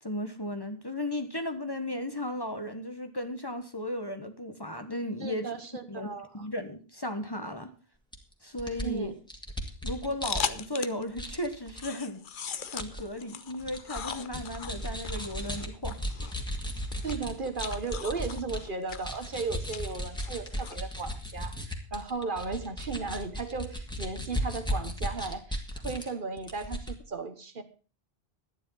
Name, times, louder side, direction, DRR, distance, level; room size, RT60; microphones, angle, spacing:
voice 1, 0.0-5.5 5.9-7.7 8.4-9.1 9.8-12.2 12.7-16.0, left 1 dB, 25° left, 8 dB, 1.2 m, -35 dB
voice 2, 5.2-6.5 8.8-9.1 17.0-27.6, right 4 dB, 55° right, 9 dB, 1.4 m, -35 dB
sound 1, 8.1-8.2 8.6-10.9 11.2-11.8 12.8-13.0 13.4-18.6 18.9-26.1 26.4-26.9, equal, 5° left, 2.1 m, -35 dB
sound 2, 10.2-11.1 11.4-20.8, left 7 dB, 55° left, 0.9 m, -39 dB
12.5 x 10.0 x 5.5 m, 0.36 s
omnidirectional pair, 1.0 m